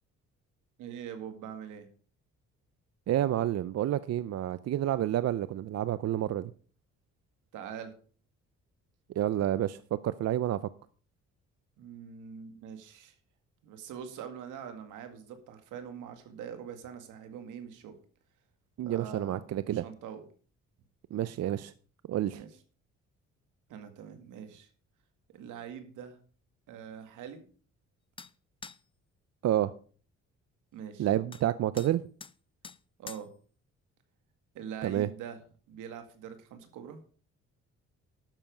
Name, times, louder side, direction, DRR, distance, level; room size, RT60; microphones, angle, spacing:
voice 1, 0.8-1.9 7.5-7.9 11.8-13.1 13.6-17.9 18.9-19.4 19.6-20.2 22.4-22.5 23.7-24.7 25.3-26.2 26.7-27.4 30.7-31.1 33.0-33.3 34.5-35.4 35.7-37.0, right 8 dB, 90° right, 7 dB, 2.0 m, -43 dB
voice 2, 3.1-6.5 9.2-10.6 18.8-19.8 21.1-21.7 22.1-22.4 29.4-29.7 31.0-32.0 34.8-35.1, right 12 dB, 60° right, 15 dB, 0.6 m, -29 dB
sound 1, 28.2-28.3 28.6-28.8 31.3-31.4 31.8-31.9 32.2-32.3 32.6-32.8 33.1-33.3, left 5 dB, 20° left, 0.4 m, -45 dB
11.5 x 7.0 x 5.2 m, 0.42 s
cardioid pair, 90°, 30 cm